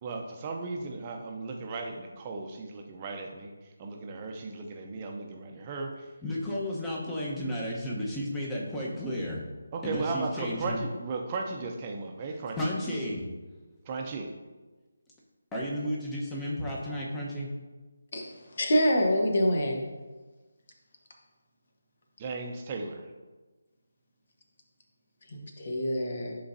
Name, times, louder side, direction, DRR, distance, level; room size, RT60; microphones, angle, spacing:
voice 1, 0.0-3.5 3.8-5.9 9.7-12.6 13.9-14.3 22.2-23.0, right 3 dB, 25° right, 2 dB, 0.7 m, -36 dB
voice 2, 6.2-9.4 9.8-10.8 12.2-13.2 15.5-17.5, equal, 10° left, -4 dB, 1.0 m, -33 dB
voice 3, 18.6-19.8 25.3-26.3, equal, 50° left, 2 dB, 1.2 m, -26 dB
10.5 x 3.9 x 2.7 m, 1.3 s
figure-of-eight pair, 160°, 0 cm